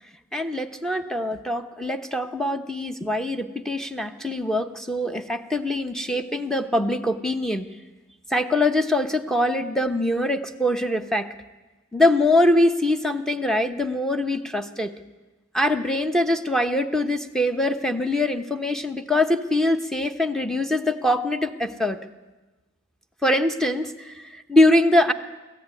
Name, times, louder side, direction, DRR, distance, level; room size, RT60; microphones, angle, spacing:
voice 1, 0.3-7.6 8.3-11.3 11.9-14.9 15.5-22.0 23.2-25.1, left 1 dB, ahead, 7 dB, 1.0 m, -23 dB
24.5 x 15.0 x 9.8 m, 1.2 s
head